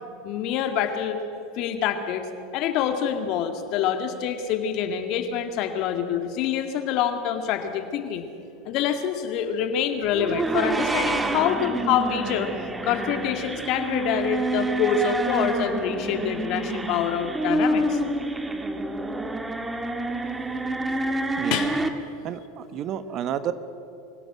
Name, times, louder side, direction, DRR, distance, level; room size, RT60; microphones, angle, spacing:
voice 1, 0.2-1.2 1.6-2.3 2.5-8.3 8.7-12.5 12.8-18.0 21.5-21.7, left 8 dB, 55° left, 6 dB, 2.1 m, -26 dB
sound 1, 10.1-21.9, right 2 dB, 15° right, 1.7 m, -28 dB
voice 2, 21.4-21.7 22.2-23.5, right 10 dB, 45° right, 12 dB, 1.1 m, -30 dB
24.5 x 16.5 x 7.6 m, 2.7 s
hypercardioid pair, 85°, 0 cm